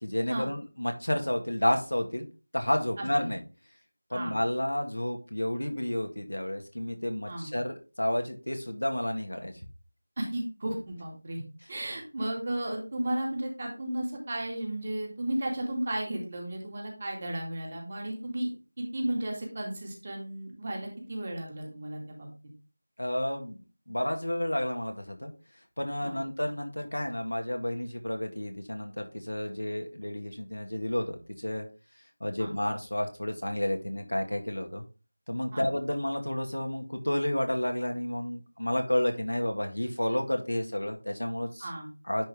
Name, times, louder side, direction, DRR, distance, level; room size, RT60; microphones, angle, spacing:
voice 1, 0.0-2.3 2.5-3.4 4.1-9.6 23.0-23.6 23.9-25.3 25.8-31.7 32.2-34.8 35.3-41.7 42.1-42.2, left 1 dB, 90° left, 4 dB, 2.0 m, -31 dB
voice 2, 3.0-3.3 4.1-4.4 7.3-7.5 10.2-11.4 11.7-18.5 18.8-22.3 26.0-26.2 32.4-32.5 35.5-35.6 41.6-41.9, right 1 dB, 30° right, 0 dB, 2.4 m, -34 dB
10.0 x 4.9 x 3.6 m, 0.32 s
figure-of-eight pair, 175°, 0 cm